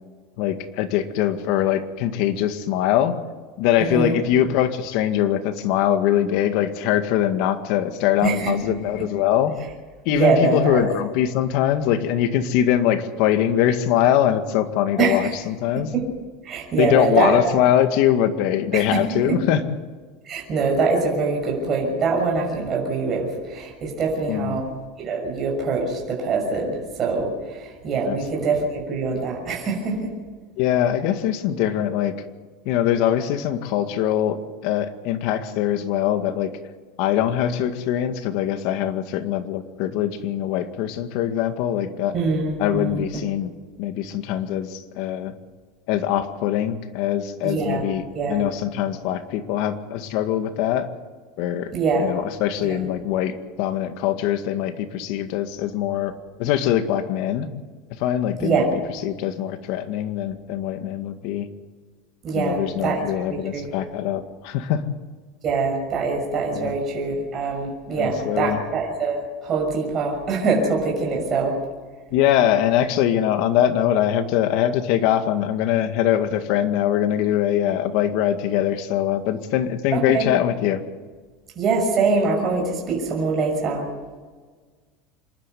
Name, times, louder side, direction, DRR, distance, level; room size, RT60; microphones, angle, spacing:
voice 1, 0.4-3.2 3.6-9.5 10.1-15.9 16.8-19.6 24.3-24.6 28.1-28.2 30.6-32.1 32.7-34.4 34.6-36.5 37.0-42.1 42.6-43.5 43.8-45.3 45.9-50.9 51.4-51.7 52.0-56.1 56.4-57.5 58.0-58.6 59.0-61.5 62.3-64.8 66.5-66.7 67.9-68.6 72.1-80.8, left 11 dB, 60° left, 8 dB, 2.0 m, -22 dB
voice 2, 3.8-4.1 8.2-8.5 10.1-10.8 15.0-15.3 15.8-16.1 16.4-17.4 18.7-19.0 20.3-24.7 25.0-30.1 42.1-43.0 47.4-47.8 48.1-48.5 51.7-52.1 52.6-52.8 58.4-58.7 62.2-63.7 65.4-71.5 79.9-80.3 81.6-83.9, right 4 dB, 30° right, 0 dB, 6.3 m, -24 dB
26.5 x 12.0 x 9.3 m, 1.5 s
supercardioid pair, 150°, 0 cm